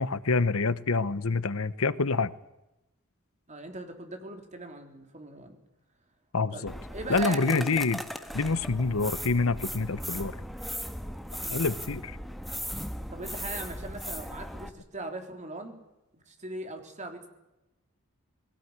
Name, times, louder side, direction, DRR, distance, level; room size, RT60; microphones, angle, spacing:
voice 1, 0.0-2.3 6.3-6.7 7.1-8.0 8.3-10.4 11.5-12.2, left 3 dB, 85° left, 16 dB, 1.0 m, -27 dB
voice 2, 3.5-5.6 6.5-7.8 11.4-11.6 13.1-15.8 16.1-17.3, right 2 dB, 35° right, 5 dB, 3.7 m, -39 dB
sound 1, 6.7-14.7, equal, ahead, 1.4 m, -37 dB
21.0 x 18.0 x 9.7 m, 0.94 s
head